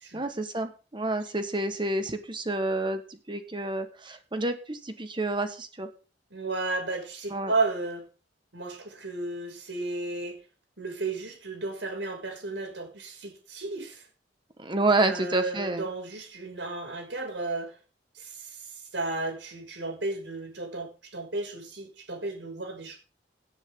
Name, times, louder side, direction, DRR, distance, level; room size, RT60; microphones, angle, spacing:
voice 1, 0.1-5.9 7.3-7.5 14.6-15.9, right 2 dB, 25° right, 8 dB, 1.4 m, -29 dB
voice 2, 6.3-8.0 8.5-10.4 10.8-14.0 15.0-17.7 18.2-18.6 18.9-23.0, right 3 dB, 80° right, 3 dB, 5.9 m, -33 dB
18.0 x 9.9 x 3.8 m, 0.34 s
head